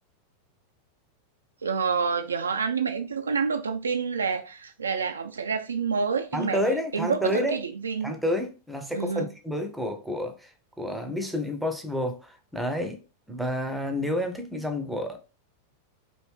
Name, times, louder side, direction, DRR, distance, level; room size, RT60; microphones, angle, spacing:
voice 1, 1.6-6.6 6.9-8.1 8.9-9.3, right 5 dB, 75° right, 0.3 m, -28 dB
voice 2, 6.3-7.6 8.0-10.5 10.8-13.0 13.3-15.2, equal, 5° right, 0.6 m, -29 dB
3.0 x 2.6 x 3.2 m
figure-of-eight pair, 90°, 0 cm